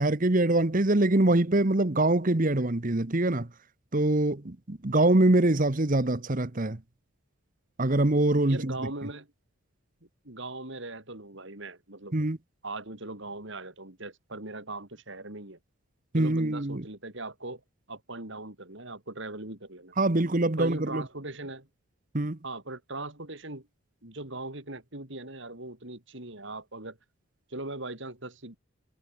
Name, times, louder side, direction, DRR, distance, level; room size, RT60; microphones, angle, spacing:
voice 1, 0.0-3.5 3.9-6.8 7.8-8.9 12.1-12.4 16.1-16.8 20.0-21.1 22.1-22.4, right 2 dB, 35° right, 1.1 m, -24 dB
voice 2, 8.5-9.3 10.2-12.1 12.6-15.6 16.1-17.6 17.9-19.9 20.6-21.7 22.4-23.7 24.0-27.0 27.5-28.6, right 2 dB, 55° right, 3.3 m, -39 dB
head